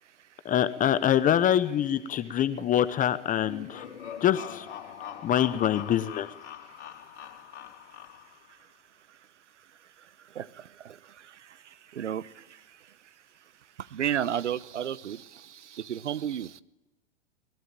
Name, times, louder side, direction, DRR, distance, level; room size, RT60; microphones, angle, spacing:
voice 1, 0.4-3.8 4.2-4.7 5.2-6.3, left 10 dB, 25° left, 13 dB, 1.0 m, -25 dB
sound 1, 3.4-8.5, left 9 dB, 70° left, 4.0 m, -42 dB
voice 2, 13.9-15.2 15.9-16.5, right 10 dB, 80° right, 18 dB, 1.0 m, -30 dB
23.0 x 20.5 x 9.0 m, 1.0 s
hypercardioid pair, 115°, 35 cm